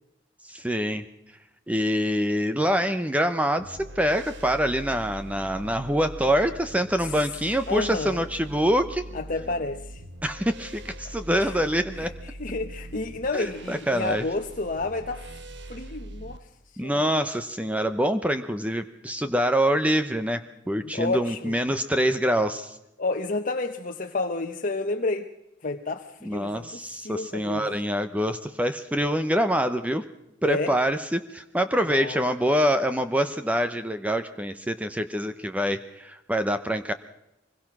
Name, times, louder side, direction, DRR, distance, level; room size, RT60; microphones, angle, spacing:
voice 1, 0.4-1.0 1.7-9.1 10.2-12.1 13.3-14.2 16.8-22.8 26.2-30.0 30.4-36.9, equal, 5° right, 9 dB, 0.8 m, -25 dB
sound 1, 3.6-16.4, right 1 dB, 65° right, 1.3 m, -42 dB
voice 2, 7.7-8.2 9.1-10.0 11.4-11.6 12.0-12.1 12.4-15.3 15.7-16.4 16.8-17.0 20.7-21.5 23.0-25.3 25.6-27.7 30.4-30.7 31.9-32.2, left 3 dB, 45° left, 4 dB, 1.1 m, -30 dB
25.0 x 21.5 x 6.1 m, 0.90 s
head